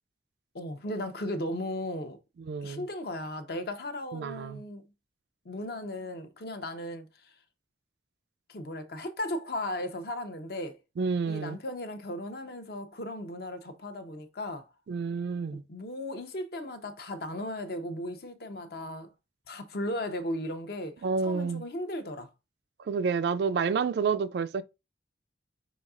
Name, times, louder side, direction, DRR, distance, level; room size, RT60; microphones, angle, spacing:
voice 1, 0.5-2.2 2.6-4.9 5.4-7.3 8.5-10.8 11.3-14.7 15.7-19.1 19.5-22.3, left 1 dB, 55° left, 0.7 m, -36 dB
voice 2, 2.4-2.9 4.1-4.6 11.0-11.6 14.9-15.6 21.0-21.6 22.9-24.6, right 5 dB, 65° right, 0.3 m, -29 dB
4.7 x 4.0 x 2.4 m
head